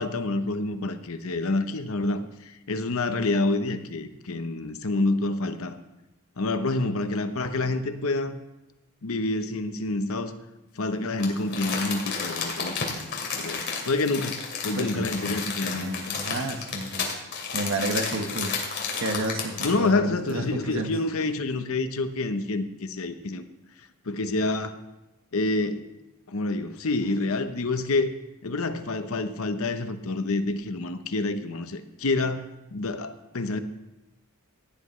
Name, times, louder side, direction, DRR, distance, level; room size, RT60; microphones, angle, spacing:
voice 1, 0.0-5.8 6.4-8.4 9.0-10.4 10.8-12.8 13.3-16.0 19.6-23.5 24.1-24.8 25.3-25.8 26.3-28.1 28.4-33.6, left 2 dB, 70° left, 9 dB, 0.8 m, -28 dB
Crumpling crinkling, 11.2-19.9 20.3-20.4, left 5 dB, 50° left, 2.5 m, -32 dB
voice 2, 14.7-17.1 17.5-20.9, right 2 dB, 60° right, 5 dB, 1.3 m, -32 dB
16.5 x 10.0 x 3.2 m, 0.98 s
head